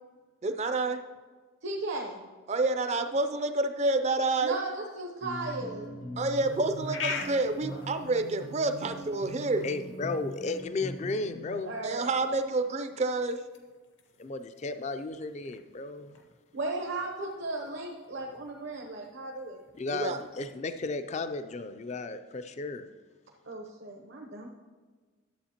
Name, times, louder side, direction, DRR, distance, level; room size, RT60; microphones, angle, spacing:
voice 1, 0.4-1.0 2.5-4.6 6.2-9.6 11.8-13.4 19.9-20.2, right 2 dB, 35° right, 8 dB, 0.4 m, -28 dB
voice 2, 1.6-2.2 4.4-6.0 11.6-12.1 16.5-19.6 23.4-24.5, right 2 dB, 65° right, 0 dB, 0.8 m, -36 dB
sound 1, 5.2-11.6, equal, 80° left, 1.2 m, -41 dB
sound 2, 6.2-20.3, left 4 dB, 65° left, 0.8 m, -46 dB
voice 3, 9.6-11.7 14.2-16.1 19.8-22.9, left 3 dB, 35° left, 10 dB, 0.4 m, -34 dB
11.5 x 7.8 x 2.9 m, 1.4 s
head